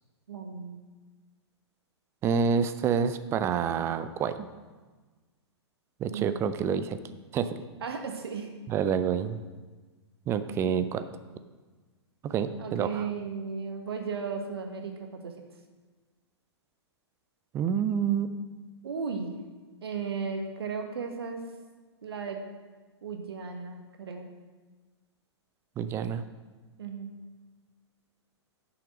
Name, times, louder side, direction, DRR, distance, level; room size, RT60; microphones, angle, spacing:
voice 1, 0.3-0.8 6.1-6.5 7.8-8.5 12.6-15.3 18.8-19.3 19.8-21.4 22.0-22.4 23.0-24.3 26.8-27.1, right 5 dB, 60° right, 4 dB, 1.4 m, -35 dB
voice 2, 2.2-4.5 6.0-7.0 7.3-7.6 8.7-9.4 10.3-11.0 12.2-13.1 17.5-18.3 25.8-26.2, right 7 dB, 15° right, 11 dB, 0.5 m, -28 dB
10.5 x 5.8 x 6.2 m, 1.3 s
figure-of-eight pair, 115°, 15 cm